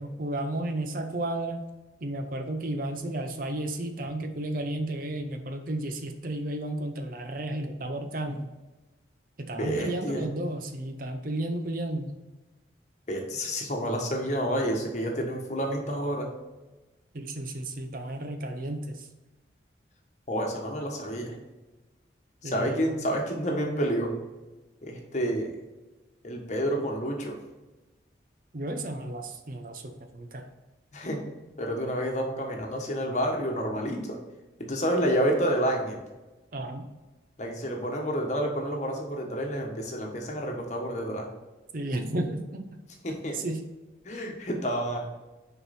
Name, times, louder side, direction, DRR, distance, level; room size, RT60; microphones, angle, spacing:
voice 1, 0.0-1.6 2.0-8.5 9.4-12.1 17.1-19.1 22.4-23.0 28.5-30.5 36.5-36.9 41.7-42.7 43.3-43.6, right 1 dB, 45° right, 6 dB, 0.7 m, -33 dB
voice 2, 9.5-10.3 13.1-16.3 20.3-21.3 22.4-24.1 24.8-25.5 26.2-27.4 30.9-31.2 31.6-34.2 34.6-36.0 37.4-41.3 43.0-43.4 44.0-45.1, equal, 40° left, 1 dB, 1.2 m, -29 dB
6.5 x 4.6 x 4.2 m, 1.1 s
head